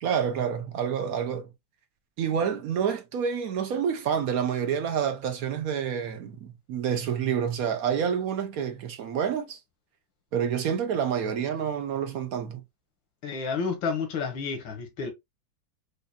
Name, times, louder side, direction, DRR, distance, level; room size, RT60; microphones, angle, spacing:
voice 1, 0.0-1.5 2.2-9.6 10.3-12.6, right 8 dB, 65° right, 1.0 m, -28 dB
voice 2, 13.2-15.1, left 5 dB, 85° left, 1.8 m, -30 dB
5.2 x 2.5 x 2.2 m
omnidirectional pair, 2.0 m